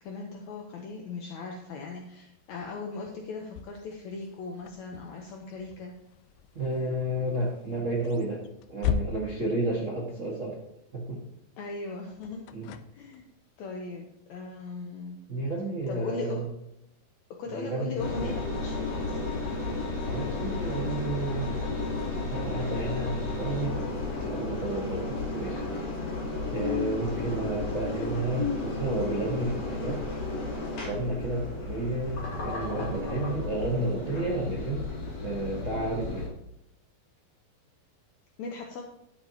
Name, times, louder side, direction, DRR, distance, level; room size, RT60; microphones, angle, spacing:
voice 1, 0.0-6.0 11.6-12.4 12.9-13.2 13.6-15.2 15.9-16.4 17.4-19.2 38.4-38.8, left 4 dB, 70° left, 1 dB, 1.8 m, -38 dB
sound 1, 2.3-10.6 11.6-13.4, left 8 dB, 90° left, 2.5 m, -38 dB
voice 2, 6.5-8.4 8.7-10.6 10.9-11.2 12.5-12.7 15.3-16.5 17.5-18.3 20.1-21.6 22.3-23.8 24.2-26.0 26.5-30.0 30.3-30.6 30.8-34.9 35.2-36.3, right 2 dB, 80° right, -4 dB, 0.7 m, -31 dB
Engine, 18.0-36.3, left 3 dB, 55° left, 3.9 m, -33 dB
13.0 x 7.4 x 2.9 m, 0.85 s
omnidirectional pair, 4.2 m